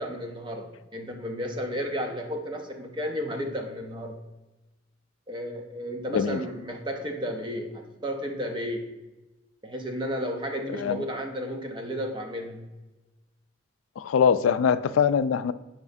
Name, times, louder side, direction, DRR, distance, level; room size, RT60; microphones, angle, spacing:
voice 1, 0.0-4.2 5.3-8.9 9.6-12.7, equal, 25° right, 3 dB, 0.7 m, -33 dB
voice 2, 14.0-15.5, left 7 dB, 85° left, 14 dB, 0.3 m, -22 dB
7.0 x 5.1 x 2.6 m, 1.1 s
head